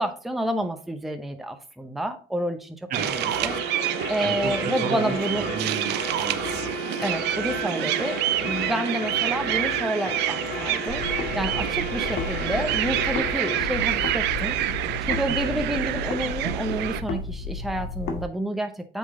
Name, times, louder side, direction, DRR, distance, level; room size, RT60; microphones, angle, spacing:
voice 1, 0.0-3.6 4.1-5.4 7.0-11.1 11.3-14.6 15.0-19.0, right 1 dB, ahead, 6 dB, 0.7 m, -29 dB
sound 1, 2.9-17.0, right 14 dB, 85° right, 0.5 m, -27 dB
sound 2, 3.0-13.7, left 6 dB, 50° left, 1.8 m, -35 dB
voice 2, 4.2-6.7 15.4-15.6, right 5 dB, 55° right, 7 dB, 1.2 m, -33 dB
sound 3, 10.9-13.3 13.6-18.2, left 3 dB, 75° left, 1.6 m, -33 dB
8.4 x 3.7 x 3.7 m, 0.41 s
cardioid pair, 110°, 17 cm